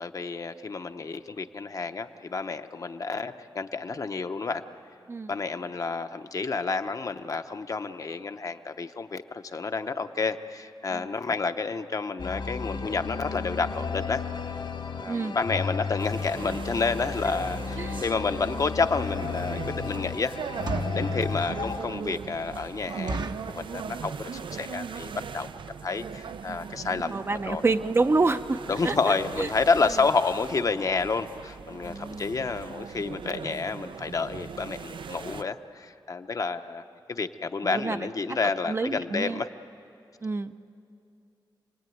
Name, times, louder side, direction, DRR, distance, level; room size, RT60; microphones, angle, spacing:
voice 1, 0.0-4.6 5.3-14.2 15.0-20.4 20.9-25.5 25.8-27.2 27.5-27.6 28.7-36.8 37.1-39.5, left 4 dB, 45° left, 8 dB, 0.8 m, -30 dB
sound 1, 12.2-21.8, left 5 dB, 70° left, 2.0 m, -33 dB
sound 2, 16.0-35.4, right 6 dB, 80° right, 0.5 m, -39 dB
sound 3, 20.6-21.1 21.6-21.7 22.0-22.1 22.5-22.6 23.1-23.6 24.2-24.5 24.7-24.8 25.1-25.3 25.9-26.0 26.2-26.4 26.7-26.8 27.0-27.1, right 2 dB, 60° right, 1.0 m, -35 dB
voice 2, 27.1-29.0 29.4-29.5 31.8-32.3 37.6-38.4 38.7-39.4 40.2-40.5, right 3 dB, 30° right, 9 dB, 0.6 m, -28 dB
28.0 x 19.5 x 9.3 m, 2.6 s
wide cardioid pair, 170°, 8 cm